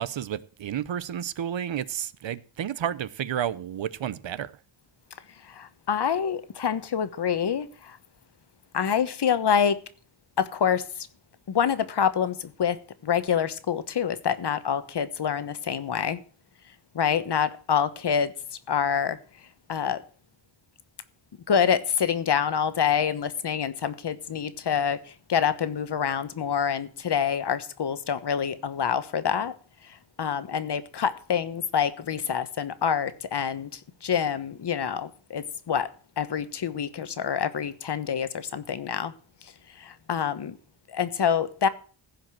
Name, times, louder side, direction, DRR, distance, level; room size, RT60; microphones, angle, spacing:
voice 1, 0.0-4.5, right 10 dB, 65° right, 0.8 m, -31 dB
voice 2, 5.4-8.0 8.7-9.8 10.4-11.1 11.5-16.2 16.9-18.3 18.7-19.2 19.7-20.0 21.5-29.5 29.8-39.1 39.4-40.6 40.9-41.7, left 7 dB, 55° left, 1.2 m, -27 dB
15.5 x 5.3 x 7.5 m
wide cardioid pair, 120°, 48 cm